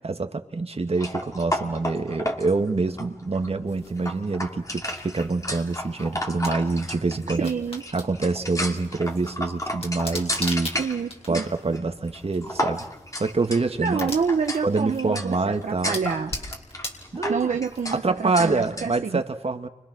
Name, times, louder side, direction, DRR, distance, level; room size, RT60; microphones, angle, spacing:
voice 1, 0.0-7.5 7.9-10.7 11.3-12.9 13.1-14.1 14.6-16.0 17.1-17.5 17.9-19.7, right 3 dB, 55° right, 6 dB, 2.0 m, -26 dB
sound 1, 0.9-19.0, left 1 dB, 25° left, 2.7 m, -34 dB
sound 2, 3.7-18.2, left 2 dB, 50° left, 4.8 m, -41 dB
voice 2, 7.4-7.8 10.7-11.4 13.8-16.3 17.3-19.2, right 6 dB, 80° right, 4 dB, 1.0 m, -27 dB
30.0 x 25.5 x 6.2 m, 0.87 s
cardioid pair, 45°, 13 cm